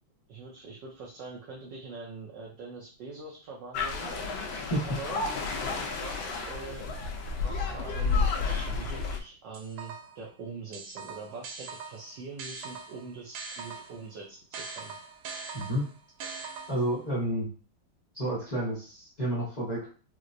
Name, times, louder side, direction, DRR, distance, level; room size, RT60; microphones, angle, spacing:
voice 1, 0.3-4.1 4.7-5.2 6.0-6.9 7.4-14.9, right 4 dB, 70° right, -3 dB, 1.2 m, -43 dB
sound 1, 3.7-9.2, left 4 dB, 75° left, 1.2 m, -31 dB
sound 2, 9.5-10.3 10.7-14.1 14.5-17.0, right 4 dB, 85° right, 1.5 m, -42 dB
voice 2, 16.7-17.5 18.1-19.9, right 1 dB, 45° left, -7 dB, 0.5 m, -30 dB
4.4 x 2.0 x 2.5 m, 0.38 s
omnidirectional pair, 2.3 m